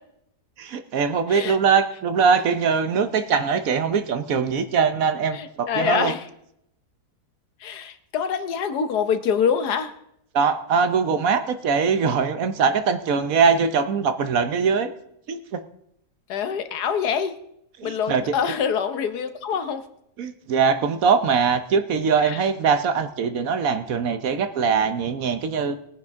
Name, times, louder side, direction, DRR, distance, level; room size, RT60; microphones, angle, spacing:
voice 1, 0.6-6.1 10.3-14.9 15.3-15.6 17.8-18.3 20.2-25.8, right 6 dB, 65° right, 10 dB, 1.1 m, -22 dB
voice 2, 5.3-6.2 7.6-9.9 16.3-17.4 17.8-19.8 22.2-22.4, left 7 dB, 75° left, 10 dB, 1.4 m, -25 dB
20.0 x 9.6 x 3.6 m, 0.75 s
omnidirectional pair, 1.7 m